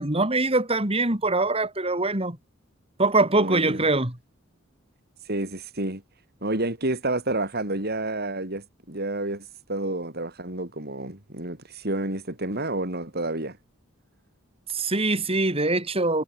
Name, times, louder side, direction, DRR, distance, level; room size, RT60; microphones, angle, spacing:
voice 1, 0.0-2.4 3.0-4.2 14.7-16.2, right 2 dB, 30° right, 3.8 m, -23 dB
voice 2, 3.4-3.9 5.3-6.0 6.4-13.6, right 2 dB, 50° right, 5.3 m, -30 dB
head